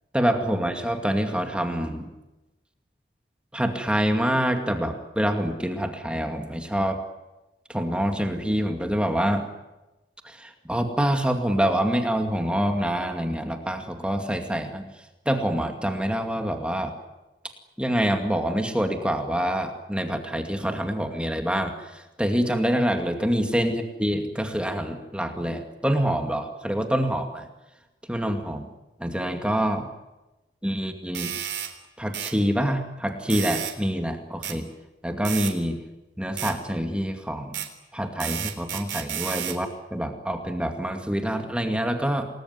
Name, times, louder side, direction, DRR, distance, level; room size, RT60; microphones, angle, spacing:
voice 1, 0.1-2.1 3.5-7.0 7.7-9.5 10.2-14.8 15.3-16.9 17.8-27.5 28.1-28.7 29.0-29.9 30.6-31.4 32.0-34.7 35.0-35.8 36.2-37.6 37.9-42.3, equal, 5° right, 4 dB, 2.3 m, -26 dB
sound 1, 31.2-31.7 32.1-32.4 33.3-33.8 34.4-34.6 35.3-35.5 36.4-36.6 37.5-37.7 38.2-39.6, right 11 dB, 75° right, 3.7 m, -31 dB
28.0 x 20.5 x 9.5 m, 1.0 s
head